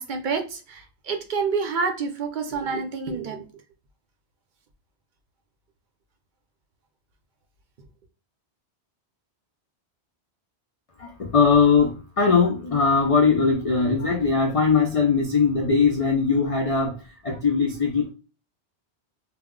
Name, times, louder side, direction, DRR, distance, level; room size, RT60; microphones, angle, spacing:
voice 1, 0.0-3.5, right 5 dB, 55° right, 5 dB, 0.6 m, -28 dB
voice 2, 11.0-17.0 17.2-18.1, left 5 dB, 55° left, 1 dB, 0.4 m, -20 dB
2.2 x 2.0 x 3.6 m, 0.35 s
omnidirectional pair, 1.1 m